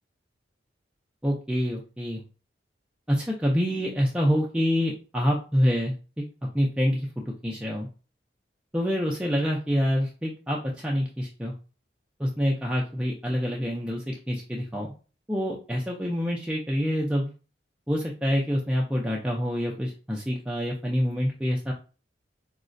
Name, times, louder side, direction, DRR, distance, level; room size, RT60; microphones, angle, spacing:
voice 1, 1.2-2.2 3.1-6.2 6.5-7.9 8.7-11.5 12.2-14.9 15.3-17.3 17.9-21.7, equal, 5° right, -2 dB, 0.3 m, -26 dB
4.7 x 2.1 x 2.5 m, 0.35 s
head